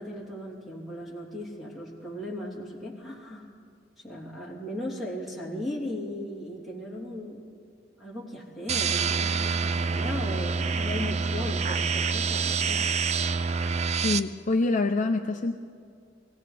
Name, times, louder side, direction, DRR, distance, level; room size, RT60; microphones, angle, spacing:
voice 1, 0.0-3.5 4.0-7.4 8.0-12.8, left 1 dB, ahead, -6 dB, 3.3 m, -37 dB
sound 1, 8.7-14.2, right 5 dB, 35° right, 0.4 m, -27 dB
voice 2, 13.9-15.6, left 3 dB, 45° left, 6 dB, 0.5 m, -26 dB
24.0 x 17.5 x 3.4 m, 2.3 s
head